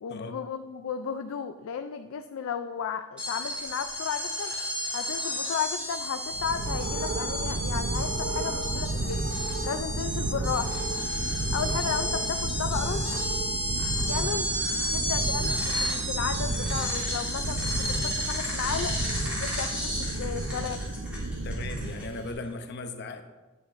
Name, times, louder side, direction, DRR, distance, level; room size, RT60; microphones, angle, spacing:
voice 1, 0.0-4.5 4.9-9.2 9.6-10.8 11.5-13.1 14.1-14.5 14.9-19.0 19.4-20.8, left 7 dB, 85° left, 7 dB, 0.4 m, -34 dB
sound 1, 3.2-22.3, equal, 5° right, 2.9 m, -32 dB
sound 2, 6.3-22.3, right 2 dB, 65° right, 0.7 m, -32 dB
voice 2, 21.4-23.2, left 2 dB, 55° left, 7 dB, 0.7 m, -37 dB
9.6 x 8.0 x 2.5 m, 1.2 s
head